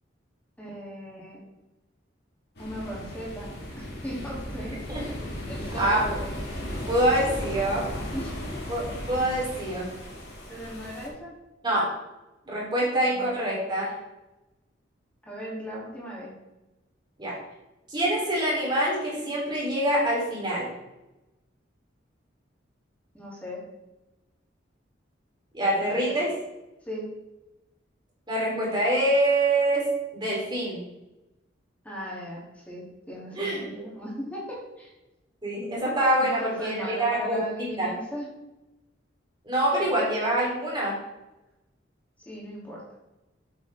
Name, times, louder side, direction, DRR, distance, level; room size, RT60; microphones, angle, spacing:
voice 1, 0.6-1.4 2.6-4.8 5.5-6.1 8.1-8.6 10.5-11.3 13.1-13.5 15.2-16.3 23.1-23.6 25.8-26.2 26.9-27.1 31.8-34.9 36.4-38.3 39.8-40.0 42.2-42.8, equal, 10° left, -5 dB, 2.8 m, -37 dB
sound 1, 2.6-11.1, equal, 60° left, 2.2 m, -36 dB
voice 2, 5.8-6.2 6.9-7.9 8.7-9.9 11.6-11.9 12.5-13.9 17.2-17.4 17.9-20.7 25.5-26.3 28.3-29.8 30.1-30.8 33.4-33.6 35.4-37.4 37.8-37.9 39.5-40.9, right 1 dB, 25° right, -5 dB, 3.4 m, -25 dB
8.5 x 7.7 x 3.6 m, 1.0 s
head